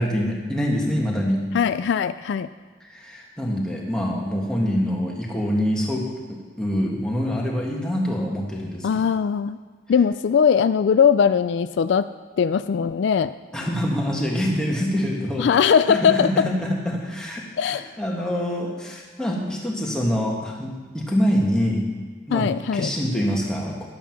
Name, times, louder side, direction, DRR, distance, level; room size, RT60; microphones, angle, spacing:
voice 1, 0.0-1.4 2.8-8.9 13.5-15.5 15.9-21.8 22.3-23.9, equal, 5° left, -3 dB, 1.6 m, -25 dB
voice 2, 1.5-2.5 8.8-9.6 9.9-12.1 12.4-13.3 15.4-16.5 17.6-17.9 22.3-22.9, left 7 dB, 65° left, 13 dB, 0.3 m, -20 dB
11.0 x 8.5 x 6.0 m, 1.5 s
head